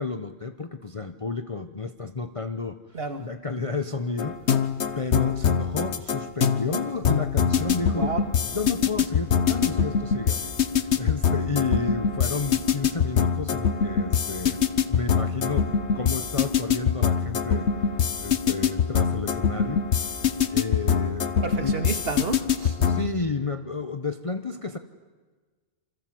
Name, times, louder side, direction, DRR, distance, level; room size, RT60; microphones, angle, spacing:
voice 1, 0.0-4.6 5.0-8.1 8.5-20.1 20.5-21.3 21.6-21.8 22.8-24.8, left 4 dB, 30° left, 8 dB, 1.0 m, -31 dB
sound 1, 4.2-23.1, left 7 dB, 75° left, 1.4 m, -24 dB
voice 2, 21.4-22.8, right 3 dB, 60° right, 8 dB, 2.2 m, -31 dB
28.0 x 26.5 x 7.7 m, 1.4 s
omnidirectional pair, 1.2 m